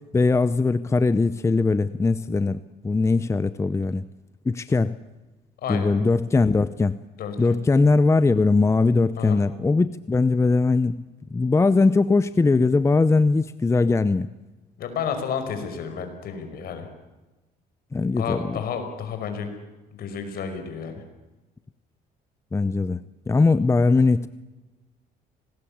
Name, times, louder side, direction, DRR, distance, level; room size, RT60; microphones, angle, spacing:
voice 1, 0.1-4.1 4.5-5.0 5.7-7.0 7.4-11.0 11.3-14.3 17.9-18.6 22.5-24.3, left 3 dB, 15° left, 15 dB, 0.7 m, -20 dB
voice 2, 5.6-5.9 7.2-7.6 9.2-9.4 14.8-16.9 18.2-19.5 19.9-21.0, left 7 dB, 65° left, 7 dB, 5.4 m, -31 dB
26.0 x 20.0 x 8.6 m, 1.1 s
cardioid pair, 110°, 17 cm